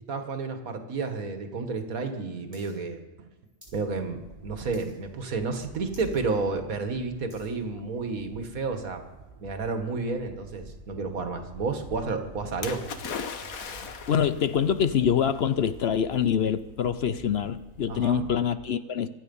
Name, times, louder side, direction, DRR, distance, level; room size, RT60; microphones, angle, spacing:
voice 1, 0.1-3.0 3.7-9.0 9.4-12.8 17.9-18.3, right 4 dB, 90° right, 2.0 m, -31 dB
sound 1, 2.5-2.7 3.0-3.8 4.2-4.4 4.7-5.2 5.5-5.6 5.9-6.2 6.6-7.6 8.2-8.3, equal, 10° right, 5.7 m, -54 dB
sound 2, 3.7-18.4, right 3 dB, 40° right, 1.6 m, -48 dB
Splash splatter, 12.6-14.4 15.4-15.5, left 6 dB, 85° left, 1.6 m, -36 dB
voice 2, 14.1-19.1, left 8 dB, 60° left, 0.8 m, -25 dB
25.0 x 9.1 x 5.3 m
omnidirectional pair, 1.4 m